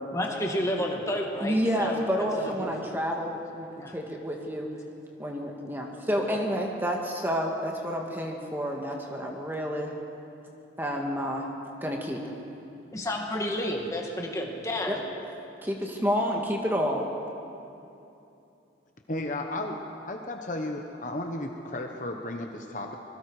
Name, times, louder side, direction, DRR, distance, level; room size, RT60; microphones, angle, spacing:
voice 1, 0.1-2.0 2.4-2.7 3.8-4.0 6.2-6.4 12.9-15.0, left 1 dB, 15° left, 0 dB, 2.2 m, -31 dB
voice 2, 1.4-3.7 3.9-4.7 5.2-9.9 10.8-11.5 11.8-12.3 14.9-15.0 15.6-17.0, equal, 10° right, 0 dB, 1.8 m, -29 dB
voice 3, 19.1-19.8 20.0-23.0, left 1 dB, 40° left, 3 dB, 1.1 m, -34 dB
25.0 x 21.5 x 4.9 m, 2.8 s
head